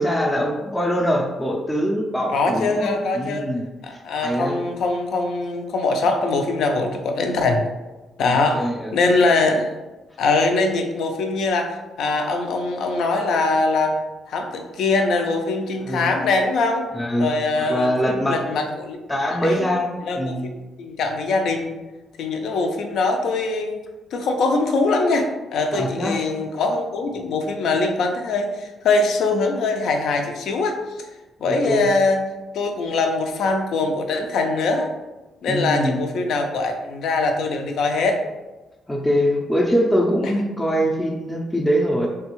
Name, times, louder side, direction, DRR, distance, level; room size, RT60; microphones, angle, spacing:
voice 1, 0.0-4.6 8.2-8.9 15.8-16.1 16.9-18.7 19.1-20.5 25.7-26.2 31.4-31.9 35.5-36.0 38.9-42.1, equal, 10° left, -2 dB, 0.4 m, -23 dB
voice 2, 2.3-3.5 3.8-7.7 8.2-9.7 10.2-14.0 14.3-16.9 17.2-19.0 19.3-19.6 20.0-21.8 22.2-23.8 24.1-31.1 31.4-32.2 32.5-34.9 35.4-38.2 40.2-40.3, left 3 dB, 70° left, 4 dB, 0.4 m, -22 dB
3.3 x 2.2 x 3.0 m, 1.1 s
cardioid pair, 90°, 0 cm